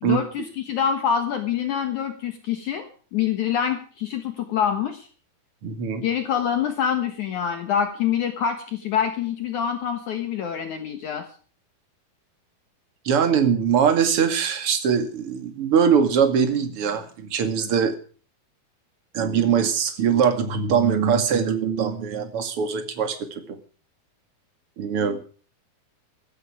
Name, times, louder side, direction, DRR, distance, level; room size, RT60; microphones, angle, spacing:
voice 1, 0.0-5.1 6.0-11.3, left 8 dB, 60° left, 7 dB, 2.5 m, -26 dB
voice 2, 5.6-6.0 13.0-17.9 19.1-23.4 24.8-25.2, right 7 dB, 45° right, 8 dB, 2.5 m, -22 dB
16.0 x 13.5 x 4.9 m, 0.41 s
omnidirectional pair, 4.4 m